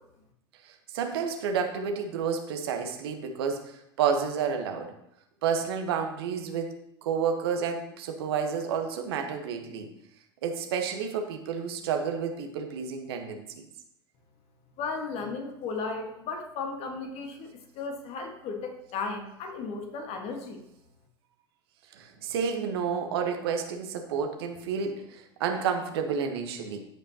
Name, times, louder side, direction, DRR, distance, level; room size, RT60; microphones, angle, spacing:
voice 1, 0.6-3.7 4.0-4.9 5.4-6.7 7.0-9.9 10.4-13.7 21.9-26.8, right 6 dB, 70° right, 4 dB, 1.2 m, -30 dB
voice 2, 14.8-17.5 17.7-20.6, left 4 dB, 50° left, 4 dB, 1.6 m, -35 dB
14.0 x 5.4 x 2.9 m, 0.80 s
hypercardioid pair, 80°, 14 cm